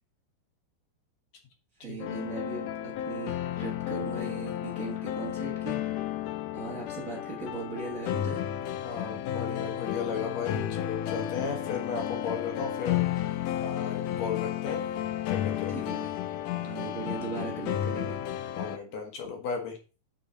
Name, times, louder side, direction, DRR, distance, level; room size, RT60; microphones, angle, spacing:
voice 1, 1.8-5.8 6.5-8.4 15.7-16.2 16.6-18.2, right 4 dB, 75° right, -3 dB, 0.7 m, -38 dB
sound 1, 2.0-18.8, left 11 dB, 80° left, 1.9 m, -32 dB
voice 2, 8.8-14.8 15.3-15.7 18.6-19.8, left 5 dB, 60° left, 3 dB, 2.2 m, -35 dB
7.1 x 5.6 x 4.0 m, 0.34 s
omnidirectional pair, 4.1 m